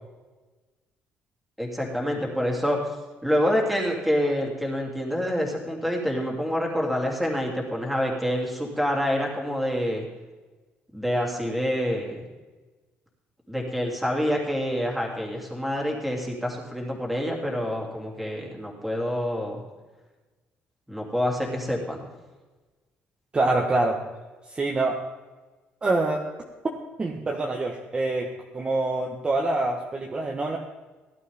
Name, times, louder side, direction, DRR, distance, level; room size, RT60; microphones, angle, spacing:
voice 1, 1.6-2.8 3.2-10.0 10.9-12.2 13.5-19.6 20.9-22.1, equal, ahead, -1 dB, 3.0 m, -27 dB
voice 2, 23.3-24.0 24.5-25.0 25.8-26.2 27.0-30.6, right 2 dB, 20° right, 0 dB, 1.3 m, -25 dB
17.0 x 11.5 x 3.6 m, 1.2 s
cardioid pair, 140°, 4 cm